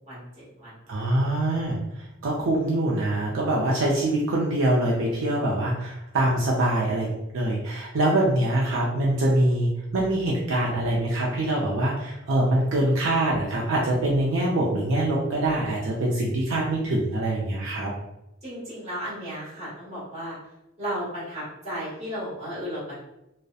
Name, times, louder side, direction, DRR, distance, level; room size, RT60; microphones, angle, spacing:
voice 1, 0.1-0.7 18.4-20.4 20.8-23.0, equal, 35° right, -8 dB, 1.2 m, -34 dB
voice 2, 0.9-1.8 2.2-17.9, right 1 dB, 75° right, -4 dB, 0.5 m, -24 dB
2.7 x 2.0 x 2.3 m, 0.88 s
head